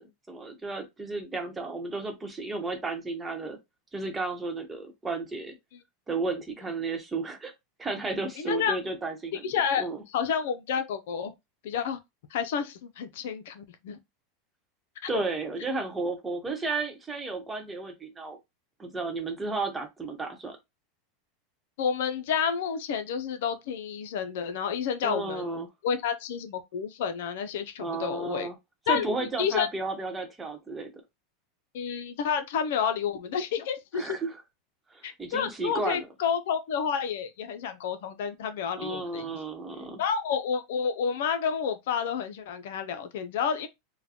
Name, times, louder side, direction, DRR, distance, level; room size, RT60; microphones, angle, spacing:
voice 1, 0.0-3.6 3.9-5.5 6.1-7.5 7.8-9.5 9.8-10.0 15.1-18.4 18.8-20.6 25.0-25.7 27.8-28.5 28.9-30.9 33.9-34.4 34.9-36.1 38.8-40.0, right 3 dB, 15° right, 1.0 m, -33 dB
voice 2, 8.4-8.8 9.4-11.3 11.6-12.0 12.3-14.0 21.8-28.5 28.9-29.7 31.7-34.2 35.0-39.3 40.0-43.7, left 7 dB, 75° left, 0.6 m, -30 dB
3.8 x 2.2 x 2.8 m
supercardioid pair, 125°, 0 cm